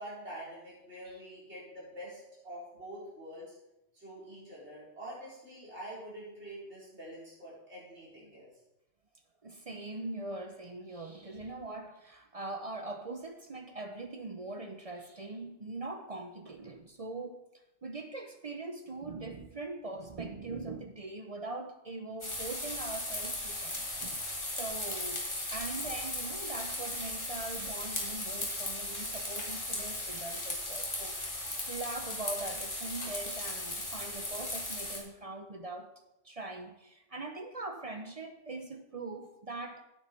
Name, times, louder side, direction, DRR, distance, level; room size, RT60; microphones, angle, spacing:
voice 1, 0.0-3.5 3.9-8.5, right 1 dB, 65° right, 4.5 m, -46 dB
voice 2, 9.4-17.4 17.8-25.2 25.5-35.9 36.2-39.9, right 2 dB, 40° right, 0.6 m, -42 dB
sound 1, 22.2-35.0, left 1 dB, 25° left, 2.0 m, -37 dB
9.1 x 8.7 x 4.4 m
omnidirectional pair, 1.3 m